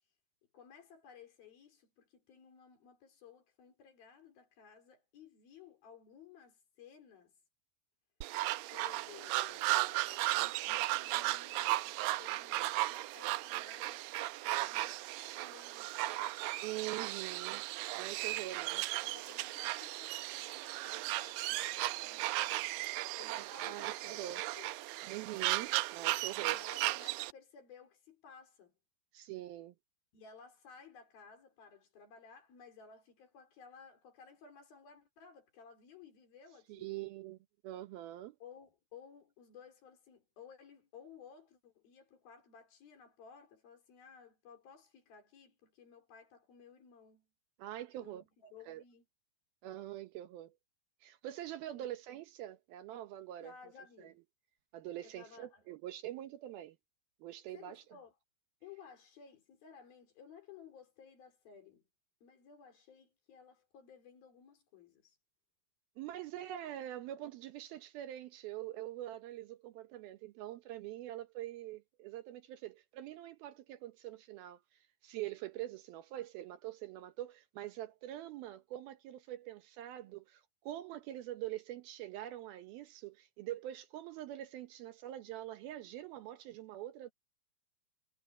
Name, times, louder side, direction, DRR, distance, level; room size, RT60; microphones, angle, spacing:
voice 1, 0.5-7.3 8.7-14.1 14.4-16.3 19.0-22.9 23.2-24.3 24.6-24.7 26.4-28.7 30.1-37.0 38.4-47.3 48.0-49.0 51.7-51.9 53.4-54.2 55.0-55.7 57.5-58.1 58.6-61.9 62.2-65.2, left 6 dB, 60° left, 5.9 m, -57 dB
sound 1, 8.2-27.3, right 18 dB, 90° right, 2.0 m, -36 dB
voice 2, 16.6-17.6 18.0-18.8 23.4-24.4 25.1-26.6 29.1-29.7 36.7-37.4 37.6-38.4 47.6-48.2 48.7-48.8 49.6-50.5 51.0-53.6 54.0-54.1 54.7-56.8 57.2-57.8 66.0-74.6 75.0-87.1, right 13 dB, 75° right, 2.6 m, -44 dB
omnidirectional pair, 4.7 m